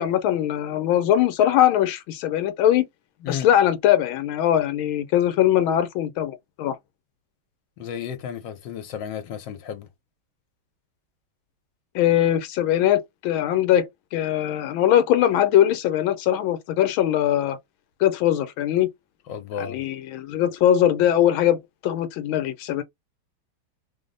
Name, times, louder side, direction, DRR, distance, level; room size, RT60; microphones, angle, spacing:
voice 1, 0.0-2.8 3.3-6.8 11.9-17.6 18.0-18.9 19.6-21.6 21.8-22.8, left 11 dB, 85° left, 1.4 m, -21 dB
voice 2, 7.8-9.9 19.3-19.8, left 8 dB, 70° left, 1.4 m, -33 dB
3.4 x 2.0 x 3.8 m
omnidirectional pair, 2.2 m